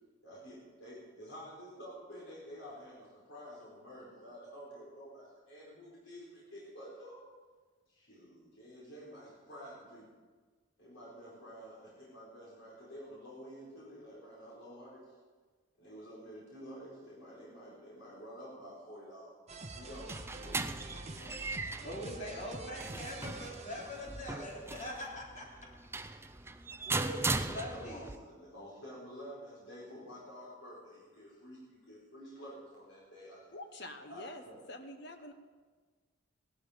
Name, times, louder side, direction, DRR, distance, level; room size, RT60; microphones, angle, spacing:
voice 1, 0.2-7.2 7.9-10.1 10.8-15.0 15.8-19.3 19.7-20.8 27.5-33.5 34.1-34.6, equal, 70° left, -6 dB, 4.7 m, -50 dB
sound 1, 19.5-24.6, right 2 dB, 35° right, 1.3 m, -47 dB
sound 2, 19.7-28.2, right 3 dB, 10° right, 0.5 m, -39 dB
voice 2, 21.8-25.5 26.9-28.0, equal, 35° left, -3 dB, 3.2 m, -42 dB
voice 3, 33.5-34.4 34.7-35.3, left 1 dB, 55° left, 7 dB, 1.2 m, -46 dB
17.5 x 12.0 x 5.2 m, 1.4 s
head